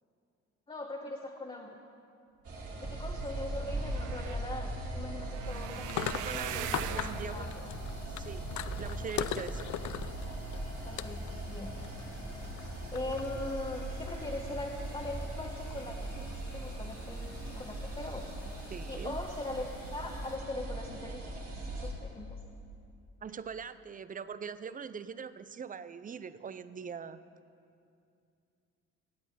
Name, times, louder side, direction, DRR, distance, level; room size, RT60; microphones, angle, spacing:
voice 1, 0.7-1.8 2.8-6.7 6.9-7.5 10.9-11.7 12.9-18.3 18.9-22.4, left 2 dB, 20° left, 0 dB, 1.1 m, -41 dB
sound 1, 2.4-21.9, right 2 dB, 50° right, 3.0 m, -40 dB
sound 2, 3.3-9.7 10.2-10.6 11.1-11.3 11.5-11.6, right 11 dB, 90° right, 0.6 m, -43 dB
sound 3, 5.7-20.4, left 11 dB, 70° left, 0.5 m, -43 dB
voice 2, 5.9-7.5 8.1-8.5 8.8-9.7 18.7-19.2 23.2-27.2, right 6 dB, 30° right, 14 dB, 0.5 m, -42 dB
17.5 x 8.2 x 5.6 m, 2.5 s
cardioid pair, 90°, 30 cm